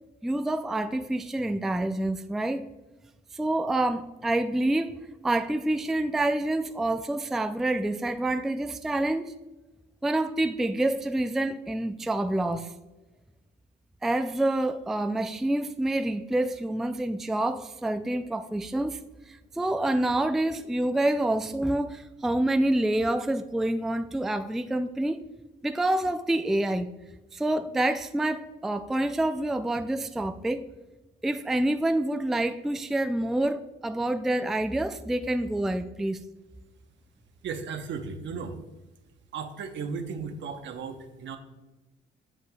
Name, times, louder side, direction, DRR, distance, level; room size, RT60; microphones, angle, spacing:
voice 1, 0.2-2.7 3.3-5.0 5.2-9.3 10.0-12.7 14.0-19.0 19.3-25.2 25.6-26.9 27.3-30.7 31.2-36.2, right 1 dB, ahead, 0.3 m, -27 dB
voice 2, 37.4-38.6 39.3-41.4, right 5 dB, 65° right, 0.9 m, -35 dB
8.1 x 7.7 x 2.3 m
cardioid pair, 90°, 20 cm